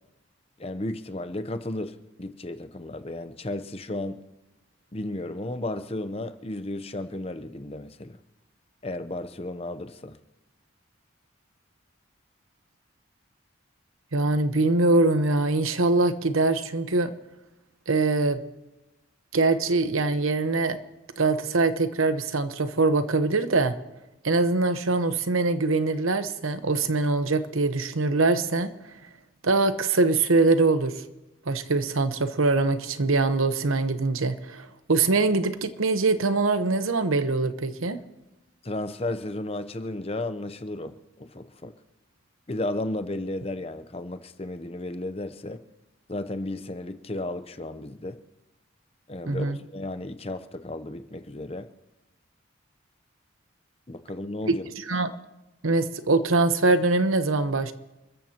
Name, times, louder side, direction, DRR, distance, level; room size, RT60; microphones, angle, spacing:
voice 1, 0.6-4.2 4.9-8.2 8.8-10.2 38.6-41.7 42.5-45.6 46.1-48.2 49.1-51.7 53.9-54.7, left 1 dB, 30° left, 0.7 m, -34 dB
voice 2, 14.1-17.1 17.9-18.4 19.3-20.8 21.2-23.7 24.2-28.7 29.4-30.9 31.5-38.0 49.3-49.6 54.5-54.6 54.9-55.1 55.6-57.7, right 3 dB, 80° right, 1.0 m, -23 dB
29.0 x 14.0 x 2.9 m
head